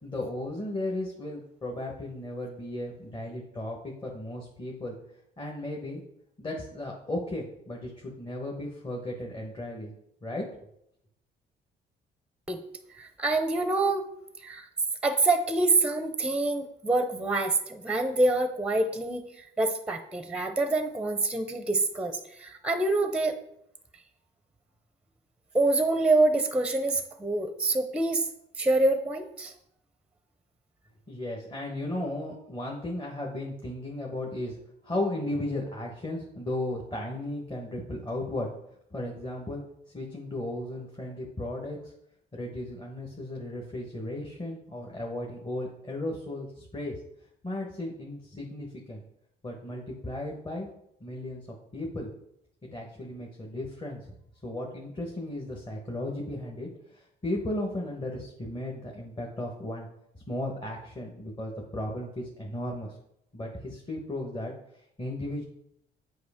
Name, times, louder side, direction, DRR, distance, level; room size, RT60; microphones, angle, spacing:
voice 1, 0.0-5.0 5.4-6.0 6.4-9.9 10.2-10.5 31.1-34.6 34.8-38.5 38.9-39.6 39.9-41.9 42.3-47.0 47.4-49.0 49.4-50.7 51.0-51.5 51.7-52.1 52.6-54.1 54.4-59.9 60.1-63.0 63.3-65.4, left 1 dB, 25° left, 0 dB, 1.2 m, -35 dB
voice 2, 13.0-14.0 14.4-14.7 15.0-23.3 25.5-28.3 28.6-29.5, right 2 dB, 5° right, 8 dB, 0.6 m, -26 dB
7.8 x 4.8 x 3.6 m, 0.77 s
cardioid pair, 90°, 20 cm